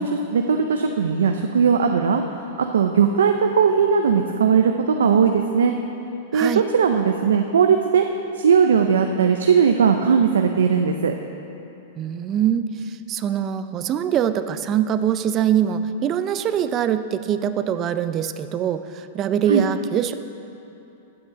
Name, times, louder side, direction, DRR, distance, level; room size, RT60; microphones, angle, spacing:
voice 1, 0.0-2.2 2.7-5.8 6.3-8.1 8.4-11.1 19.5-19.7, right 6 dB, 90° right, 5 dB, 0.5 m, -18 dB
voice 2, 6.3-6.6 12.0-20.1, right 9 dB, 30° right, 11 dB, 0.4 m, -23 dB
8.6 x 6.4 x 7.4 m, 2.9 s
hypercardioid pair, 130°, 0 cm